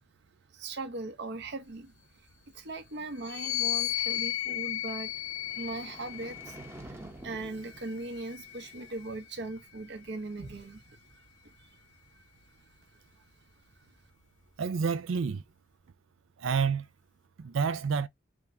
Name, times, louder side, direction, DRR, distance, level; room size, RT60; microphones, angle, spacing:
voice 1, 0.5-1.9 2.5-5.1 5.5-6.6 6.8-11.2 11.6-11.7, right 2 dB, 60° right, 0.9 m, -39 dB
sound 1, 3.2-6.8 7.6-9.2, left 14 dB, 40° left, 0.6 m, -35 dB
sound 2, 4.9-9.2, right 1 dB, 10° right, 0.8 m, -49 dB
voice 2, 14.6-15.4 16.4-16.8 17.4-18.1, right 5 dB, 75° right, 0.4 m, -28 dB
3.6 x 3.4 x 2.7 m
head